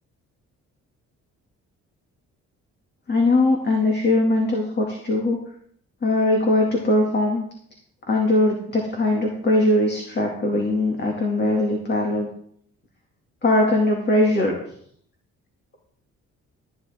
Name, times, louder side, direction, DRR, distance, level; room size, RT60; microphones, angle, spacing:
voice 1, 3.1-5.4 6.0-7.4 8.1-12.3 13.4-14.5, left 2 dB, 35° left, 0 dB, 2.5 m, -20 dB
14.0 x 10.5 x 3.7 m, 0.65 s
cardioid pair, 90°, 30 cm